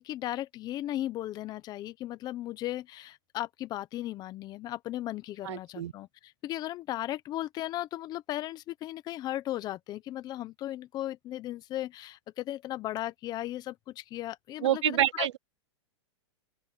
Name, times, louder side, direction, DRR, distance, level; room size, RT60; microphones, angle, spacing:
voice 1, 0.0-15.3, left 14 dB, 25° left, 1.1 m, -36 dB
voice 2, 5.4-5.9 14.6-15.4, right 12 dB, 80° right, 0.8 m, -27 dB
open air
supercardioid pair, 145°, 15 cm